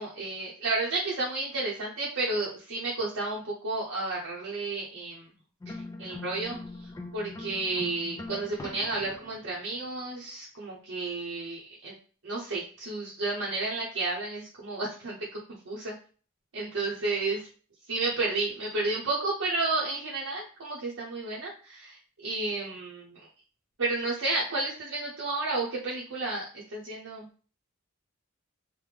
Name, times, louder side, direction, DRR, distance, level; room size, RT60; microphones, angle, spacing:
voice 1, 0.0-5.3 5.7-11.9 12.2-15.9 16.5-17.5 17.9-23.3 23.8-27.3, right 3 dB, 65° right, -5 dB, 0.7 m, -32 dB
sound 1, 5.6-9.6, left 2 dB, 15° left, 0.3 m, -42 dB
3.3 x 2.1 x 3.2 m, 0.40 s
head